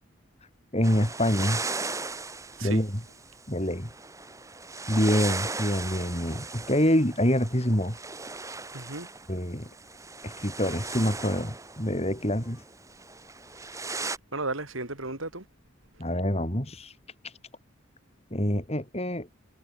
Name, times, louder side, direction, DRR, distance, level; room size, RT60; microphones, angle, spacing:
voice 1, 0.7-1.6 2.6-2.9 3.5-3.9 4.9-7.9 9.3-9.7 10.2-12.6 16.0-16.9 17.2-17.3 18.3-19.3, equal, 30° left, 5.9 m, -26 dB
sound 1, 0.8-14.2, right 3 dB, 15° right, 3.4 m, -37 dB
voice 2, 8.7-9.1 13.5-13.9 14.3-15.4, right 2 dB, 90° right, 7.3 m, -35 dB
head